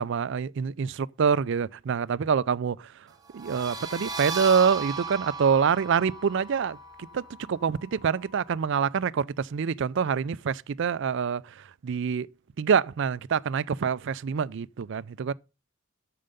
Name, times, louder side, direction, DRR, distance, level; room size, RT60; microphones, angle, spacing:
voice 1, 0.0-2.9 3.3-6.8 7.1-7.2 7.5-11.4 11.8-12.3 12.6-15.3, right 6 dB, 55° right, 0.4 m, -26 dB
sound 1, 3.3-8.8, right 4 dB, 20° right, 1.0 m, -37 dB
9.0 x 6.7 x 5.2 m
head